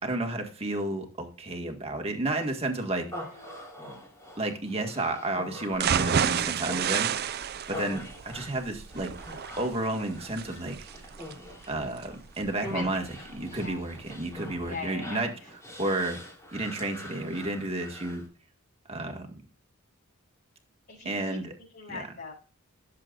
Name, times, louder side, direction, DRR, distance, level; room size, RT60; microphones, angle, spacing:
voice 1, 0.0-3.1 4.4-7.4 7.7-9.1 9.6-10.8 11.7-13.0 13.3-15.3 15.8-16.2 16.5-18.2 18.9-19.3 21.1-21.5 21.9-22.1, right 2 dB, 30° right, 3 dB, 1.9 m, -31 dB
voice 2, 3.0-3.6 12.6-13.1 13.5-13.8 14.6-15.2 20.9-21.4 21.7-22.3, left 4 dB, 50° left, -8 dB, 5.9 m, -41 dB
Human voice, 3.1-18.3, left 1 dB, 15° left, 3.2 m, -44 dB
sound 1, 5.7-13.7 14.1-14.2 14.6-14.7, right 8 dB, 50° right, 0.5 m, -31 dB
17.0 x 7.6 x 2.5 m, 0.38 s
head